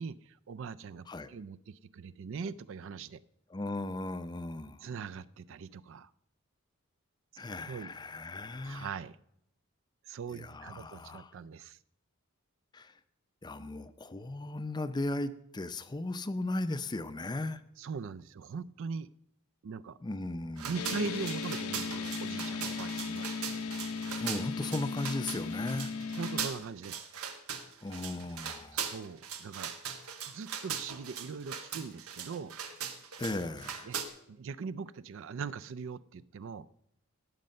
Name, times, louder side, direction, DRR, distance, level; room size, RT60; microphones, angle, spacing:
voice 1, 0.0-3.2 4.8-6.1 7.7-7.9 8.6-9.2 10.0-11.8 17.8-19.1 19.6-20.0 20.6-23.3 25.7-25.8 26.1-27.1 28.7-29.7 30.2-32.6 33.8-34.0 34.3-36.7, right 5 dB, 60° right, 0.4 m, -41 dB
voice 2, 3.5-4.8 7.4-8.9 10.3-11.3 12.7-12.9 13.4-17.6 20.0-20.7 22.9-23.0 24.2-25.9 27.8-28.9 33.2-33.9, left 2 dB, 20° left, 0.5 m, -36 dB
sound 1, 20.6-34.1, right 7 dB, 85° right, 1.2 m, -40 dB
sound 2, 20.7-26.5, left 5 dB, 85° left, 0.8 m, -37 dB
18.0 x 6.6 x 5.4 m
head